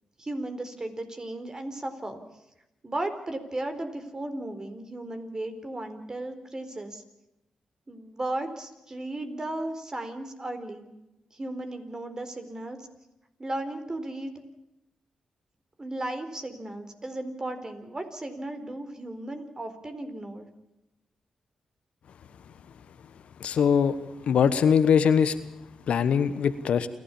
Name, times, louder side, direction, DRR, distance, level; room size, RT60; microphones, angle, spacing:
voice 1, 0.2-2.2 2.8-7.0 7.9-10.9 11.3-12.9 13.4-14.3 15.8-20.5, right 1 dB, 35° right, 8 dB, 4.1 m, -35 dB
voice 2, 23.4-24.0 24.3-25.3 25.9-26.9, left 7 dB, 75° left, 13 dB, 1.2 m, -22 dB
28.5 x 12.5 x 7.2 m, 0.90 s
supercardioid pair, 50°, 2 cm